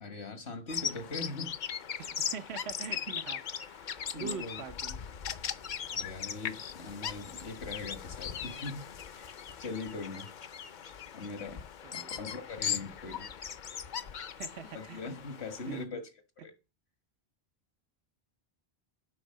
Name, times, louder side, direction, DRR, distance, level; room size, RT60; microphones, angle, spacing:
voice 1, 0.0-1.5 4.1-4.6 5.9-8.9 9.1-10.3 11.1-11.6 11.9-13.3 14.7-16.1 16.4-16.5, left 3 dB, 85° left, 1.9 m, -41 dB
Bird vocalization bird call bird song, 0.7-15.8, left 8 dB, 55° left, 0.7 m, -39 dB
voice 2, 2.0-5.0 11.8-12.3 14.3-15.0 15.7-16.0, right 7 dB, 90° right, 1.1 m, -44 dB
8.4 x 5.4 x 7.5 m
omnidirectional pair, 1.0 m